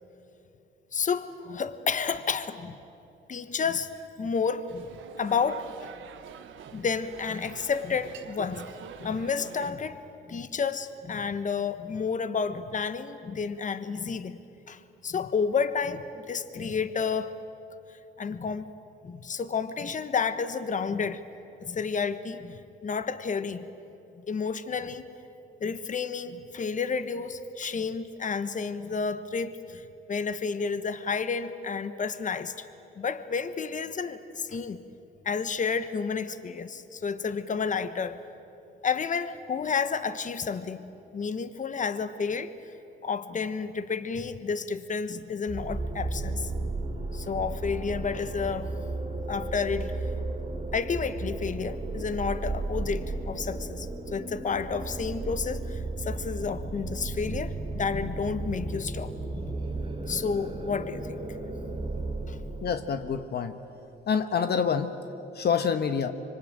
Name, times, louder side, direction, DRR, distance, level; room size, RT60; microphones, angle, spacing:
voice 1, 0.9-2.8 3.3-3.9 4.2-4.9 5.2-5.7 6.7-8.7 9.0-10.0 10.3-14.4 14.7-17.3 18.2-18.7 19.0-21.2 21.6-23.7 24.3-25.0 25.6-32.7 33.0-34.8 35.2-38.2 38.8-40.8 41.1-42.5 43.0-46.7 47.1-48.7 49.3-50.1 50.7-59.5 60.0-61.2 62.3-62.4, left 5 dB, 40° left, 12 dB, 1.3 m, -31 dB
sound 1, 4.7-9.7, right 9 dB, 80° right, 1.4 m, -46 dB
sound 2, 45.5-62.9, right 2 dB, 25° right, 3.5 m, -34 dB
voice 2, 62.6-63.6 64.1-65.0 65.3-66.1, left 6 dB, 55° left, 8 dB, 1.2 m, -27 dB
25.5 x 24.5 x 9.0 m, 2.8 s
cardioid pair, 90°, 20 cm